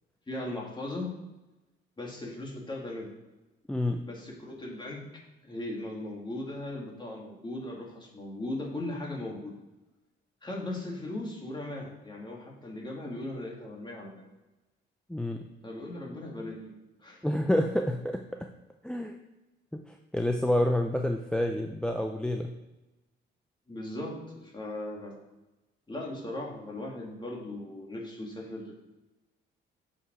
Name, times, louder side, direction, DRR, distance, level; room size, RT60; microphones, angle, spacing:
voice 1, 0.3-1.2 2.0-3.1 4.0-5.1 5.4-9.5 10.4-14.1 15.6-16.7 17.0-17.2 23.7-25.2 25.9-28.7, left 1 dB, 25° left, -2 dB, 2.5 m, -38 dB
voice 2, 3.7-4.0 15.1-15.5 17.2-18.2 18.8-19.2 19.7-22.5, left 1 dB, 5° left, 4 dB, 0.5 m, -28 dB
8.0 x 5.6 x 4.8 m, 1.1 s
cardioid pair, 90°, 20 cm